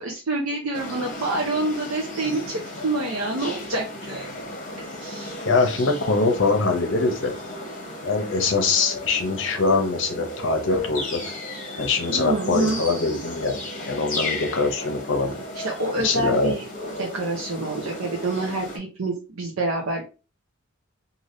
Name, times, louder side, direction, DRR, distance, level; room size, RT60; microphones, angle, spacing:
voice 1, 0.0-4.3 4.8-5.3 12.1-12.8 15.6-16.6 17.0-20.0, right 2 dB, 80° right, 0 dB, 0.6 m, -27 dB
sound 1, 0.7-18.8, left 1 dB, 40° left, 0.9 m, -35 dB
voice 2, 5.4-7.3 8.0-11.2 11.8-13.6 13.9-15.3 16.0-16.5, left 3 dB, 60° left, 4 dB, 0.7 m, -23 dB
3.3 x 2.6 x 2.5 m, 0.32 s
head